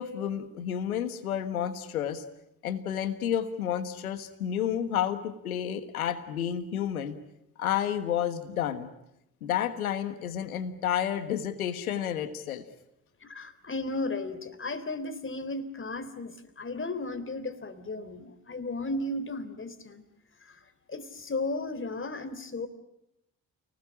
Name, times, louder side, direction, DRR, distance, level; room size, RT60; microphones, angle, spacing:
voice 1, 0.0-2.2 2.6-7.2 7.6-8.9 9.4-12.6, left 9 dB, 90° left, 12 dB, 1.6 m, -30 dB
voice 2, 13.2-20.0 20.4-22.7, left 2 dB, 30° left, 12 dB, 3.5 m, -35 dB
29.5 x 20.0 x 9.9 m, 0.85 s
hypercardioid pair, 50°, 42 cm